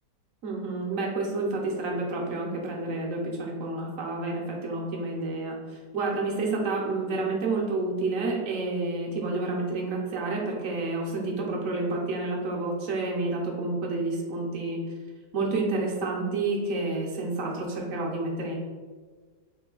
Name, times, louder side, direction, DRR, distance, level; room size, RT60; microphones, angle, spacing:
voice 1, 0.4-14.8 15.3-18.5, right 3 dB, 65° right, -1 dB, 0.9 m, -29 dB
3.8 x 2.7 x 3.7 m, 1.5 s
omnidirectional pair, 1.8 m